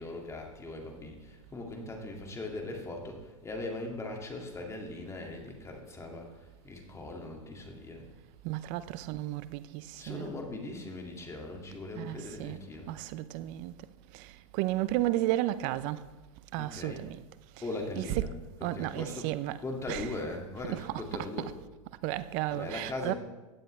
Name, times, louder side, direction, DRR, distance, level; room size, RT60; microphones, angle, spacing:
voice 1, 0.0-6.3 6.6-8.1 10.0-12.9 16.6-17.1 17.6-18.3 18.6-19.3 19.6-21.5 22.5-23.1, left 2 dB, 15° left, 2.2 m, -40 dB
voice 2, 8.4-10.3 11.9-12.6 12.9-13.7 14.1-16.1 16.5-17.2 17.6-18.3 18.6-20.2 20.6-21.5 22.0-23.1, right 15 dB, 50° right, 0.6 m, -33 dB
16.0 x 9.0 x 3.3 m
hypercardioid pair, 105°, 17 cm